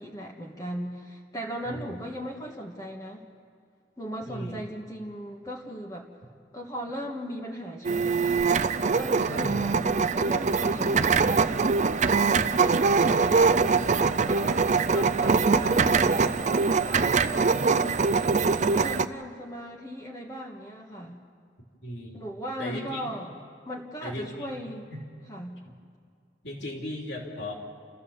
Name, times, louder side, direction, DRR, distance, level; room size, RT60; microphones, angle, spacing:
voice 1, 0.0-3.2 4.0-6.1 6.5-8.6 8.9-9.7 10.1-11.5 12.6-13.5 14.2-18.0 18.7-21.2 22.1-23.3 23.6-24.9 25.3-25.6, equal, 20° left, -1 dB, 1.5 m, -38 dB
voice 2, 1.6-2.0 4.2-4.6 9.2-9.6 13.0-13.2 18.5-19.0 21.8-22.2 22.6-23.1 24.0-24.6 24.9-25.0 26.4-27.5, left 1 dB, 65° left, 0 dB, 3.4 m, -37 dB
sound 1, 7.8-19.1, right 4 dB, 40° right, 0.5 m, -23 dB
30.0 x 14.5 x 7.2 m, 2.2 s
head